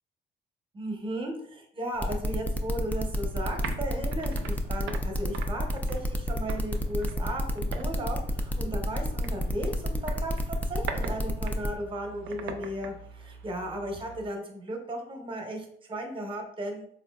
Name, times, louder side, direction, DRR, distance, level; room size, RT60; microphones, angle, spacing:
voice 1, 0.7-16.8, right 1 dB, 25° right, 2 dB, 0.8 m, -36 dB
sound 1, 2.0-11.7, equal, 10° left, 0.3 m, -30 dB
sound 2, 2.9-14.3, right 5 dB, 80° right, 0.4 m, -43 dB
3.7 x 2.5 x 2.2 m, 0.68 s
cardioid pair, 90°, 20 cm